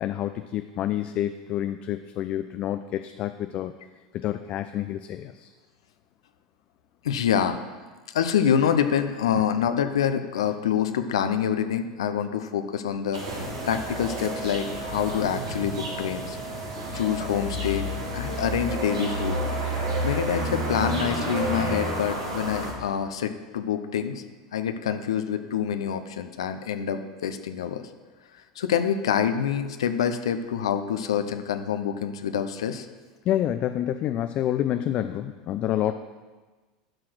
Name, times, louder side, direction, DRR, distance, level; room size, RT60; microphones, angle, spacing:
voice 1, 0.0-3.7 4.1-5.5 33.3-35.9, left 12 dB, 45° left, 9 dB, 0.4 m, -28 dB
voice 2, 7.0-7.6 8.1-16.4 16.9-17.9 18.1-19.4 20.0-24.2 24.5-27.9 28.6-32.9, left 8 dB, 80° left, 8 dB, 0.7 m, -26 dB
sound 1, 13.1-22.7, right 1 dB, 80° right, 2.4 m, -30 dB
12.0 x 4.8 x 6.1 m, 1.3 s
hypercardioid pair, 90°, 3 cm